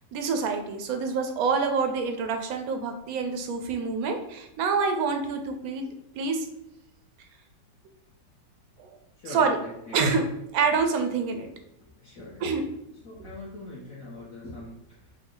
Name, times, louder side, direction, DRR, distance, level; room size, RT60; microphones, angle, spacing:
voice 1, 0.1-6.5 9.3-9.6 9.9-10.2 10.5-11.5 12.4-12.6, right 5 dB, 70° right, 5 dB, 1.0 m, -26 dB
voice 2, 9.1-10.2 11.8-12.7 13.0-15.1, left 2 dB, 55° left, -9 dB, 1.5 m, -42 dB
5.4 x 2.4 x 3.8 m, 0.81 s
omnidirectional pair, 1.9 m